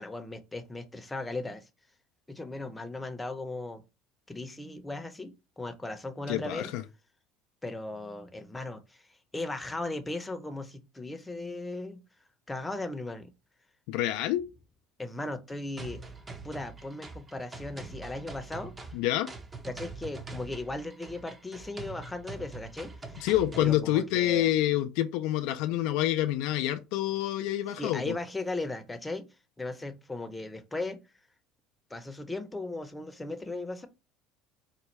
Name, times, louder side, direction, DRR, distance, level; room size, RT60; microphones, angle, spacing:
voice 1, 0.0-1.7 2.3-3.8 4.3-6.7 7.6-9.0 9.3-12.0 12.5-13.3 15.0-16.0 16.4-18.7 19.7-23.3 23.6-24.5 27.7-29.3 29.6-31.0 31.9-33.9, left 2 dB, 15° left, 0.6 m, -37 dB
voice 2, 6.3-6.8 13.9-14.4 18.9-19.3 23.2-28.2, left 13 dB, 70° left, 0.3 m, -27 dB
sound 1, 15.8-23.8, right 3 dB, 25° right, 0.7 m, -44 dB
4.2 x 2.2 x 3.1 m
hypercardioid pair, 80°, 0 cm